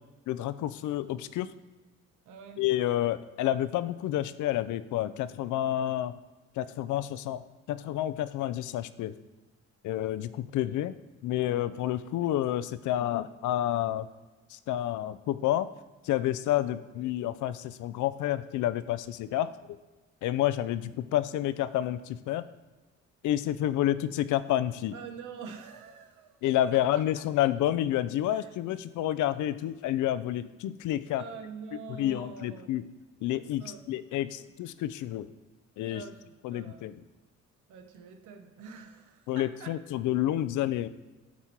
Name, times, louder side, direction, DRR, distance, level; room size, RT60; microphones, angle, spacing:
voice 1, 0.3-1.5 2.6-6.2 6.6-7.4 7.7-9.1 9.8-10.9 11.2-14.1 14.5-15.7 16.0-19.8 20.2-22.5 23.2-24.9 26.4-31.2 31.9-32.8 33.2-35.3 35.8-36.0 36.4-36.9 39.3-40.9, left 13 dB, 75° left, 14 dB, 0.5 m, -29 dB
voice 2, 2.2-2.6 24.9-26.4 26.7-27.0 28.3-28.5 31.1-32.8 33.6-33.9 34.4-34.5 35.9-36.9 37.7-39.8, right 6 dB, 80° right, 5 dB, 1.0 m, -45 dB
8.3 x 4.4 x 4.5 m, 1.2 s
cardioid pair, 90°, 30 cm